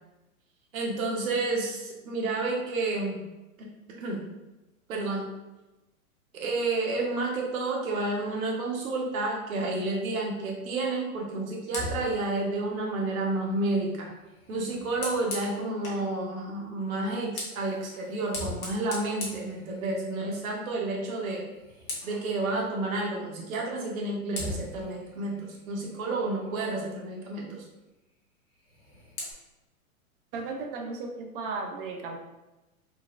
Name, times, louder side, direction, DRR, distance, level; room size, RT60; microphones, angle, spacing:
voice 1, 0.7-3.2 3.6-3.7 4.0-4.2 4.9-5.3 6.3-14.1 14.5-21.4 22.0-27.6, right 2 dB, 70° right, -1 dB, 1.1 m, -30 dB
Fire, 11.6-16.1 17.0-20.3 20.6-20.9 21.2-22.3 23.7-23.8 24.3-26.7 28.5-29.3, left 2 dB, 35° left, 1.0 m, -40 dB
voice 2, 30.3-32.2, right 4 dB, 40° right, 2 dB, 0.5 m, -35 dB
3.9 x 2.2 x 2.4 m, 1.0 s
hypercardioid pair, 120°, 43 cm